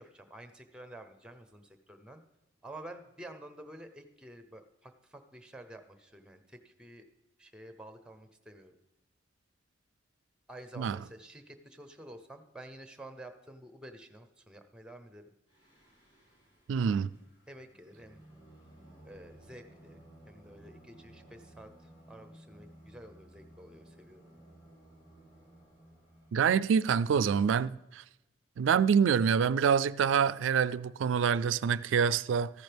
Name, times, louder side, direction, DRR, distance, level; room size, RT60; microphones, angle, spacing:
voice 1, 0.0-2.2 2.6-7.0 7.4-8.7 10.5-15.2 17.5-18.2 19.0-20.0 20.3-21.7 22.1-24.5, right 1 dB, 5° right, 0.7 m, -50 dB
Singing, 15.5-26.8, right 1 dB, 30° left, 5.1 m, -57 dB
voice 2, 16.7-17.1 26.3-28.0 28.6-32.5, right 7 dB, 85° right, 0.3 m, -26 dB
14.0 x 10.5 x 3.4 m
head